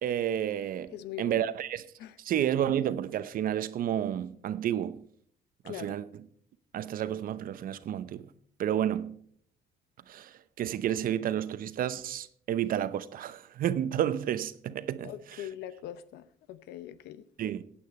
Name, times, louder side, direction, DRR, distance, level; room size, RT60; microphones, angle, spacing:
voice 1, 0.0-1.8 2.2-5.0 5.6-6.0 6.7-8.3 8.6-9.2 10.1-15.5 17.4-17.6, right 10 dB, 55° right, 0.8 m, -31 dB
voice 2, 0.9-1.4 2.0-2.2 5.6-5.9 15.0-17.2, left 11 dB, 85° left, 0.8 m, -42 dB
15.0 x 8.9 x 4.3 m
cardioid pair, 110°, 17 cm